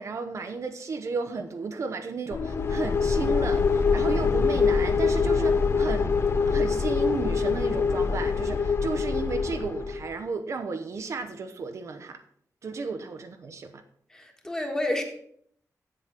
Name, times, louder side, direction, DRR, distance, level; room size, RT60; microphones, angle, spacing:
voice 1, 0.0-6.2 6.5-12.2 12.6-13.8, right 4 dB, 55° right, 0.8 m, -33 dB
sound 1, 2.3-10.1, left 5 dB, 45° left, 0.6 m, -24 dB
voice 2, 14.1-15.0, left 1 dB, 10° left, 1.5 m, -29 dB
7.8 x 7.7 x 5.8 m
wide cardioid pair, 175°, 6 cm